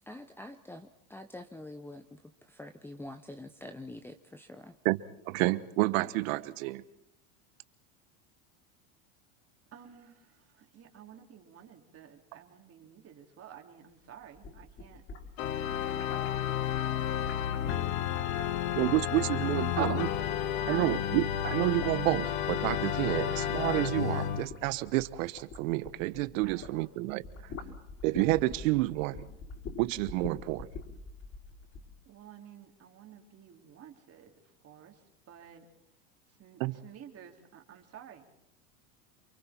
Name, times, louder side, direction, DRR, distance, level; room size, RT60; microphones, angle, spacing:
voice 1, 0.1-2.2 2.5-4.7, left 1 dB, 5° left, 1.0 m, -46 dB
voice 2, 4.8-6.8 18.7-20.1 20.7-27.2 28.0-29.2 29.8-30.7 36.6-36.8, right 19 dB, 70° right, 1.2 m, -29 dB
voice 3, 9.7-10.2 10.6-15.0 15.6-16.0 16.3-17.1 18.3-20.3 20.6-20.9 23.0-23.3 26.4-26.9 32.1-34.3 34.6-34.9 35.3-35.6 36.4-38.3, right 10 dB, 35° right, 3.5 m, -46 dB
sound 1, 14.2-20.4 20.7-26.8 27.1-31.9, left 4 dB, 35° left, 5.8 m, -46 dB
Organ, 15.4-24.5, left 10 dB, 75° left, 1.6 m, -31 dB
28.0 x 24.5 x 4.5 m
supercardioid pair, 115°, 41 cm